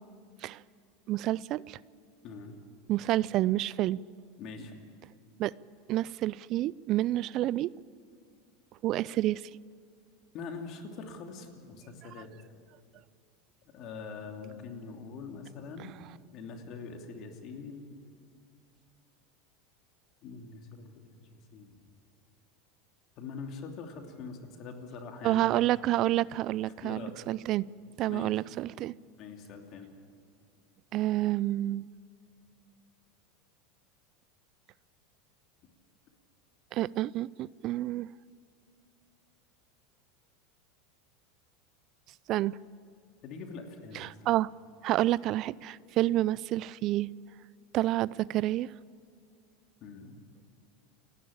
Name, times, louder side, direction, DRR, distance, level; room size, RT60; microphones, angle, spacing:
voice 1, 1.1-1.8 2.9-4.0 5.4-5.5 5.9-7.7 8.8-9.4 25.2-27.0 27.3-27.7 28.0-29.0 30.9-31.9 36.7-38.1 42.3-42.6 43.9-44.5 44.8-47.1 47.7-48.7, right 15 dB, 50° right, 0.4 m, -29 dB
voice 2, 2.2-2.6 4.4-4.8 10.3-12.3 13.7-17.8 20.2-20.9 21.2-21.7 23.2-25.6 26.8-27.1 28.1-28.3 29.2-29.9 43.2-44.1 46.1-46.2 49.8-50.2, left 4 dB, 50° left, 2.9 m, -43 dB
29.5 x 11.0 x 8.7 m
hypercardioid pair, 105°, 0 cm